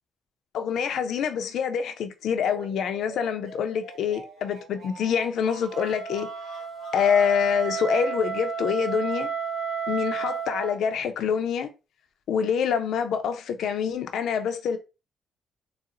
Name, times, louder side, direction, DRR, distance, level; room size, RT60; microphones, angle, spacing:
voice 1, 0.5-6.3 6.9-9.3 9.9-11.7 12.3-14.8, left 7 dB, 75° left, 0.4 m, -26 dB
sound 1, 2.4-7.4, right 3 dB, 75° right, 1.1 m, -45 dB
Wind instrument woodwind instrument, 5.7-10.7, right 6 dB, 55° right, 0.8 m, -32 dB
3.9 x 2.0 x 2.4 m
cardioid pair, 90°, 0 cm